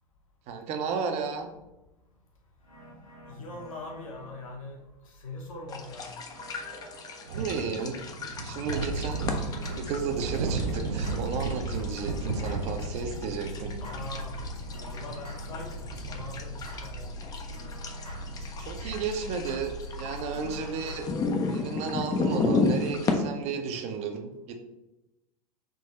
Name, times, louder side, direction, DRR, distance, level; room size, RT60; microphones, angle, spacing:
voice 1, 0.5-1.5 7.3-8.0 8.4-9.3 9.8-13.7 18.6-21.1 21.5-24.5, right 5 dB, 35° right, 5 dB, 0.7 m, -33 dB
sound 1, 2.6-4.7 6.2-7.5 8.9-21.0, left 1 dB, 90° left, 1.3 m, -42 dB
voice 2, 3.3-6.2 13.8-14.4 14.7-17.1, left 2 dB, 60° left, 1 dB, 1.1 m, -42 dB
sound 2, 5.7-23.1, left 3 dB, 20° left, 0.5 m, -34 dB
sound 3, 7.3-23.1, right 3 dB, 75° right, 0.5 m, -37 dB
3.8 x 3.0 x 4.1 m, 0.96 s
figure-of-eight pair, 90°, 19 cm